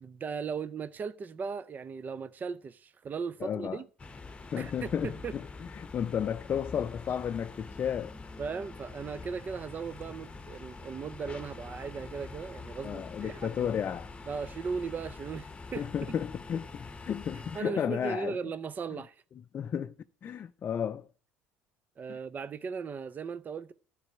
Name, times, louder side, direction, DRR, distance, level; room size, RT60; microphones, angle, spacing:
voice 1, 0.0-3.9 4.6-5.3 8.4-13.8 14.3-15.9 17.5-19.2 22.0-23.7, right 5 dB, 30° right, 0.5 m, -37 dB
voice 2, 3.4-3.8 4.5-8.1 12.8-14.1 15.8-18.4 18.9-19.0 19.4-19.9 20.2-21.1 22.1-22.2, left 8 dB, 40° left, 0.4 m, -33 dB
sound 1, 4.0-17.6, left 3 dB, 20° left, 1.0 m, -45 dB
12.0 x 4.7 x 7.4 m
hypercardioid pair, 75°, 6 cm